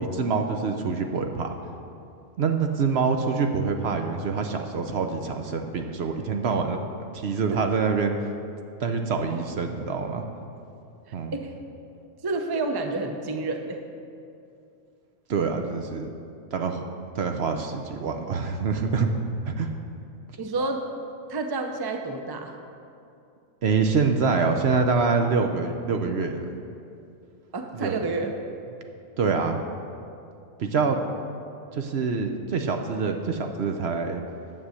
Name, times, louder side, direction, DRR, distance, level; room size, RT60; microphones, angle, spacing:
voice 1, 0.0-1.5 2.4-6.8 7.1-8.3 8.8-10.2 11.1-11.3 15.3-16.1 16.5-16.8 17.1-19.1 19.5-19.7 23.6-26.5 27.7-28.0 29.2-29.6 30.6-31.0 31.7-34.2, right 5 dB, 60° right, 5 dB, 0.9 m, -25 dB
voice 2, 12.2-13.8 20.4-20.8 21.3-22.5 27.5-28.3, right 3 dB, 25° right, 4 dB, 0.6 m, -29 dB
10.0 x 7.4 x 6.3 m, 2.6 s
omnidirectional pair, 1.3 m